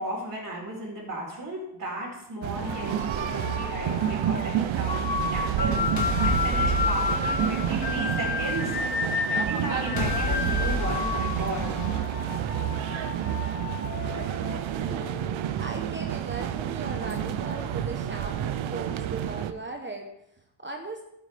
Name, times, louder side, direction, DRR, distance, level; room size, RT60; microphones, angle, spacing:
voice 1, 0.0-11.7, right 1 dB, 45° right, -3 dB, 4.0 m, -35 dB
sound 1, 2.4-19.5, right 10 dB, 85° right, 0.8 m, -29 dB
sound 2, 2.6-15.4, left 4 dB, 50° left, 1.4 m, -32 dB
sound 3, 4.7-8.8 10.0-12.8, left 2 dB, 35° left, 1.9 m, -33 dB
voice 2, 14.7-15.1 15.6-21.0, right 3 dB, 25° right, 3 dB, 1.0 m, -38 dB
12.0 x 8.7 x 3.4 m, 0.75 s
cardioid pair, 120°, 46 cm